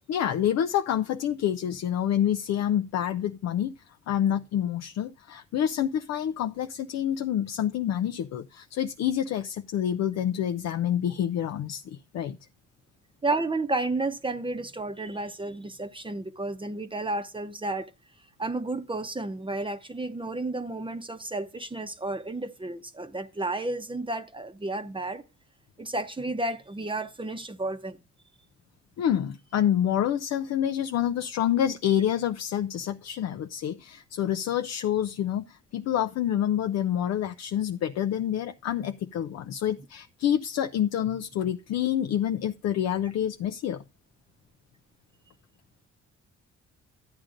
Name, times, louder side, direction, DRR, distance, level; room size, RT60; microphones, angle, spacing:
voice 1, 0.1-3.7 4.1-12.4 29.0-43.8, left 10 dB, 60° left, 0.5 m, -27 dB
voice 2, 13.2-17.9 18.4-25.2 25.8-28.0, right 2 dB, 15° right, 0.8 m, -32 dB
13.0 x 8.9 x 2.5 m
cardioid pair, 90°, 30 cm